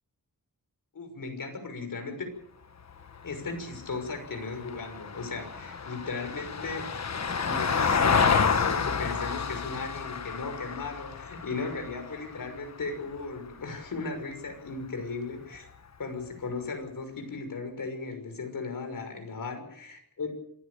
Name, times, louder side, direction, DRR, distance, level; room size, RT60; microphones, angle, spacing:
voice 1, 0.9-2.3 3.2-6.9 7.4-15.7 16.0-20.3, left 4 dB, 65° left, 6 dB, 6.2 m, -36 dB
Vehicle, 2.8-13.2 15.5-15.6, left 6 dB, 50° left, 1.4 m, -30 dB
26.5 x 16.0 x 6.9 m, 0.68 s
wide cardioid pair, 150°, 35 cm